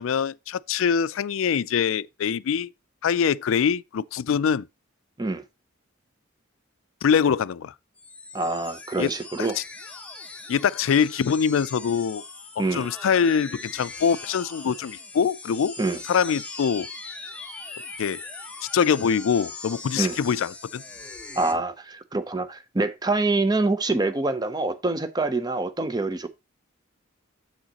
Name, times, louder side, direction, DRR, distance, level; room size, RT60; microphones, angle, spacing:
voice 1, 0.0-2.7 3.0-4.7 7.0-7.7 9.0-9.1 9.4-9.5 10.5-12.2 12.7-15.7 16.0-16.9 18.0-18.2 18.7-20.8, left 7 dB, 75° left, 0.4 m, -23 dB
sound 1, 8.0-21.5, left 3 dB, 5° left, 0.8 m, -40 dB
voice 2, 8.3-9.6 12.6-12.9 15.8-16.0 20.0-20.2 21.3-26.3, right 2 dB, 20° right, 0.6 m, -25 dB
7.8 x 6.3 x 2.9 m
head